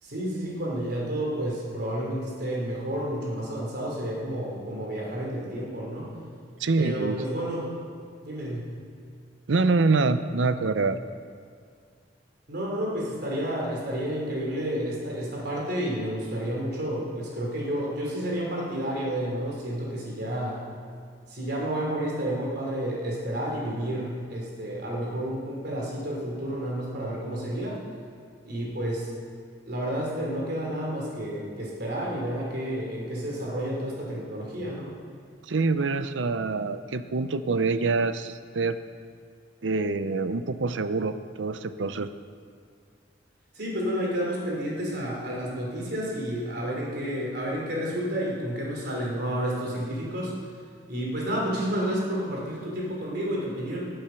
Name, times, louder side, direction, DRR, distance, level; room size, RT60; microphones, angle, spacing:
voice 1, 0.0-6.1 6.8-7.7 8.2-8.7 12.5-20.6 21.3-27.8 28.4-29.1 29.7-34.9 43.5-50.3 50.9-53.9, right 1 dB, 60° right, -3 dB, 3.7 m, -30 dB
voice 2, 6.6-7.2 9.5-11.0 35.5-38.8 39.6-42.1, right 3 dB, 85° right, 11 dB, 0.6 m, -25 dB
19.0 x 7.8 x 5.9 m, 2.1 s
head